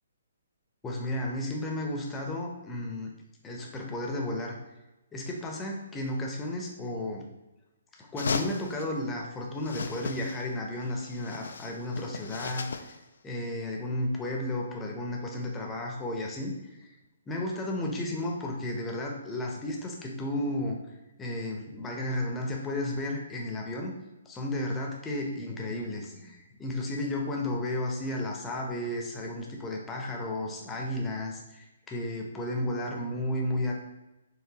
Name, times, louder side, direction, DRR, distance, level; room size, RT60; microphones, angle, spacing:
voice 1, 0.8-3.1 3.4-4.5 5.1-7.3 8.0-12.7 13.2-16.7 17.3-20.8 21.2-23.9 24.3-33.7, left 1 dB, 15° left, 0 dB, 0.7 m, -33 dB
sound 1, 8.2-8.9 9.6-10.5 10.8-13.0, left 4 dB, 65° left, 0.3 m, -36 dB
4.7 x 3.1 x 2.9 m, 0.99 s
figure-of-eight pair, 135°, 0 cm